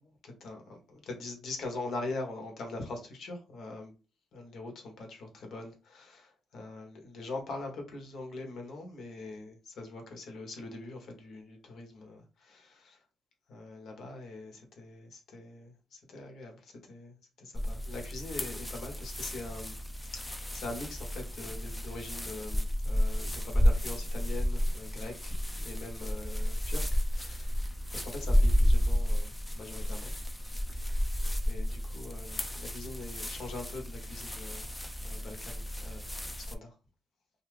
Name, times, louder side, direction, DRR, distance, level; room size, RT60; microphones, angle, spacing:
voice 1, 0.0-3.9 4.3-13.0 13.5-19.7 20.1-27.6 27.9-30.1 30.7-31.0 31.5-34.7 35.0-36.1 36.5-36.7, left 2 dB, 65° left, 1.1 m, -43 dB
sound 1, 17.5-36.5, equal, 10° left, 0.4 m, -31 dB
2.7 x 2.5 x 3.2 m
cardioid pair, 90°, 0 cm